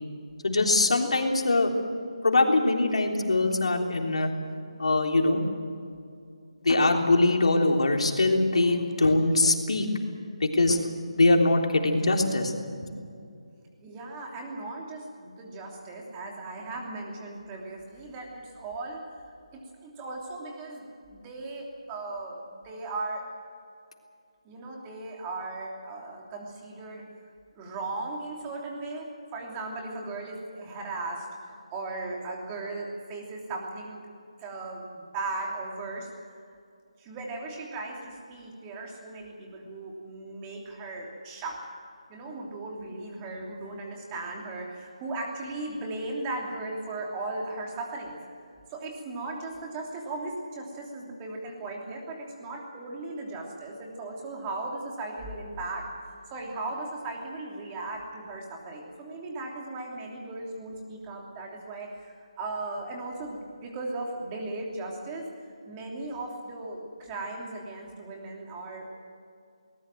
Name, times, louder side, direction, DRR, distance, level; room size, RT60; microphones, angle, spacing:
voice 1, 0.4-1.7 2.2-4.3 4.8-5.4 6.6-9.9 10.4-10.8 11.2-12.5 12.8-12.9, left 2 dB, 70° left, 2 dB, 3.5 m, -22 dB
voice 2, 13.8-19.1 19.5-23.3 24.4-27.1 27.5-34.1 34.4-36.1 37.0-41.7 42.1-48.2 48.7-55.9 56.3-65.3 65.7-68.9, right 2 dB, 15° right, 0 dB, 3.1 m, -37 dB
21.0 x 19.5 x 7.7 m, 2.4 s
figure-of-eight pair, 165°, 3 cm